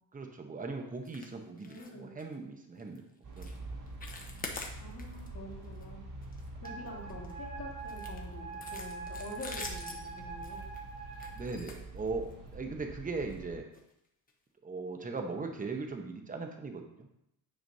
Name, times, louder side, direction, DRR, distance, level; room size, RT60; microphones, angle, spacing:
voice 1, 0.1-3.0 3.4-3.5 11.3-13.6 14.6-17.1, right 3 dB, 20° right, 4 dB, 0.9 m, -39 dB
sound 1, 1.0-1.3 1.6-1.9 2.2-2.4 2.8-3.0 3.4-3.6 3.9-5.3 5.6-5.8 6.2-7.3 7.9-12.5 13.2-13.4 13.7-13.8 14.3-14.4, left 3 dB, 20° left, 1.0 m, -45 dB
voice 2, 1.6-2.1 4.8-6.0 6.6-10.7, left 1 dB, 45° left, -10 dB, 2.0 m, -46 dB
sound 2, 3.2-13.6, right 2 dB, 75° right, 2.4 m, -46 dB
Wind instrument woodwind instrument, 6.6-11.4, right 4 dB, 55° right, 1.6 m, -44 dB
9.2 x 5.0 x 2.7 m, 0.80 s
cardioid pair, 115°, 40 cm